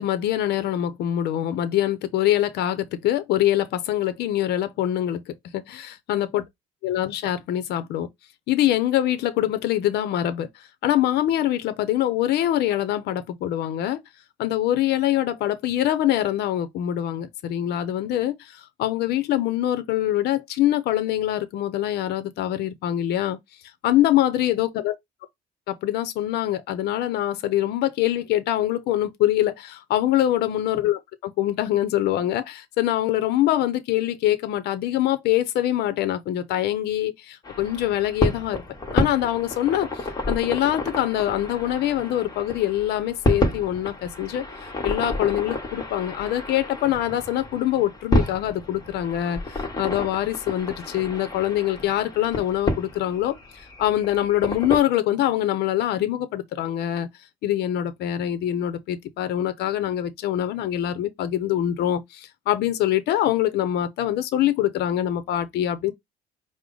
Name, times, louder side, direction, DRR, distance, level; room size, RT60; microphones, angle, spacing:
voice 1, 0.0-6.4 6.8-8.1 8.5-10.5 10.8-14.0 14.4-23.4 23.8-24.9 25.7-38.6 38.9-44.5 44.8-53.4 53.8-57.1 57.4-65.9, left 12 dB, 75° left, 0.6 m, -24 dB
sound 1, 37.4-54.8, left 1 dB, 20° left, 1.1 m, -30 dB
4.8 x 2.1 x 3.7 m
cardioid pair, 110°, 17 cm